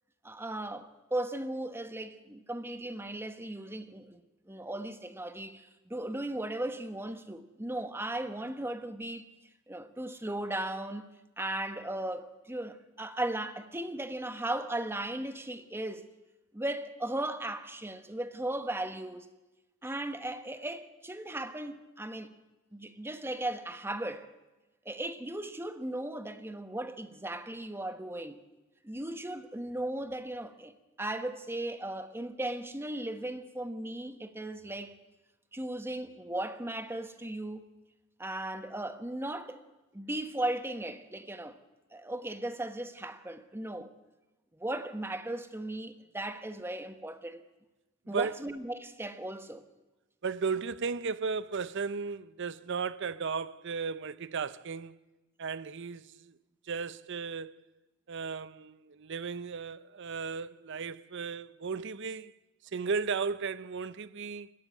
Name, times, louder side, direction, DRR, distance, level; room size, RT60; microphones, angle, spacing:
voice 1, 0.2-4.2 4.5-9.3 9.7-16.1 16.5-19.3 19.8-22.3 22.7-24.3 24.8-28.4 28.8-35.0 35.5-37.7 38.2-39.6 39.9-41.6 41.9-43.9 44.5-47.4 48.1-49.6, right 1 dB, 10° right, 1.1 m, -37 dB
voice 2, 50.2-55.0 55.4-56.3 56.7-57.6 58.1-62.3 62.7-64.5, right 5 dB, 60° right, 0.6 m, -35 dB
21.0 x 15.5 x 8.2 m
head